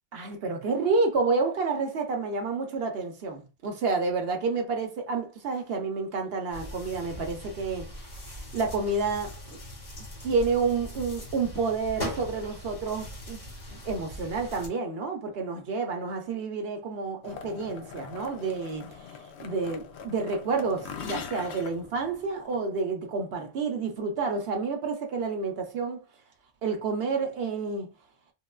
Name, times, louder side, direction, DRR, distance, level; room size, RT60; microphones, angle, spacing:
voice 1, 0.1-9.6 10.2-13.4 13.7-26.0 26.6-27.9, right 4 dB, 60° right, 0.8 m, -29 dB
sound 1, 6.5-14.7, left 1 dB, 30° left, 1.0 m, -40 dB
sound 2, 17.2-22.6, left 6 dB, 70° left, 0.8 m, -42 dB
3.6 x 2.2 x 2.3 m
omnidirectional pair, 1.2 m